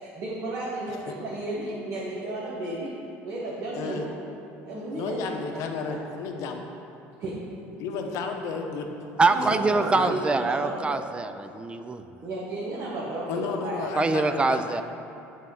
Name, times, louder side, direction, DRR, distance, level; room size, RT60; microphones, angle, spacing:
voice 1, 0.0-2.9 3.2-4.1 4.6-5.6 5.9-6.0 7.2-7.4 9.3-10.8 12.2-13.9 14.2-14.4, right 2 dB, 50° right, -7 dB, 1.3 m, -33 dB
voice 2, 3.7-4.1 4.9-6.6 7.8-8.9 9.4-9.5 9.9-10.1 13.3-14.8, left 5 dB, 70° left, 4 dB, 0.7 m, -32 dB
voice 3, 9.2-12.0 13.9-14.8, right 3 dB, 20° right, 9 dB, 0.3 m, -24 dB
7.5 x 3.6 x 5.3 m, 2.8 s
supercardioid pair, 100°, 6 cm